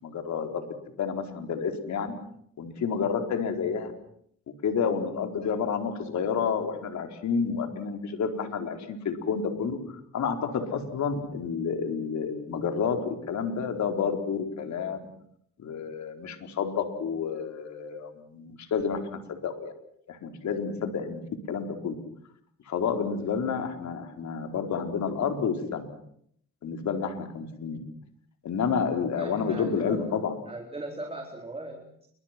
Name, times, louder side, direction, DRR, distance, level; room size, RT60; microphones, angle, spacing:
voice 1, 0.0-0.6 1.0-2.1 2.6-3.9 4.6-9.8 10.1-15.0 15.6-19.7 20.1-21.2 21.5-21.9 22.7-25.9 26.6-27.8 28.4-30.3, left 6 dB, 65° left, 5 dB, 4.4 m, -30 dB
voice 2, 29.1-30.2 30.5-32.1, right 2 dB, 20° right, 2 dB, 4.1 m, -38 dB
29.0 x 24.0 x 6.1 m, 0.68 s
cardioid pair, 90°, 30 cm